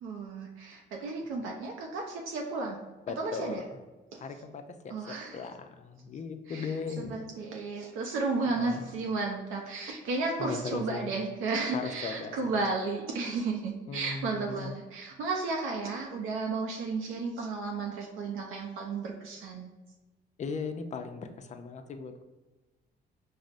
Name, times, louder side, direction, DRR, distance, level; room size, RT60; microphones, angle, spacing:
voice 1, 0.0-2.9 3.2-3.6 4.1-4.2 4.9-5.4 6.5-19.7, right 3 dB, 85° right, 1 dB, 0.4 m, -33 dB
voice 2, 3.1-3.8 4.2-7.2 8.6-8.9 10.4-11.1 11.7-12.4 13.9-14.7 20.4-22.2, left 5 dB, 35° left, 7 dB, 0.4 m, -38 dB
5.1 x 2.0 x 2.4 m, 1.2 s
cardioid pair, 90°, 20 cm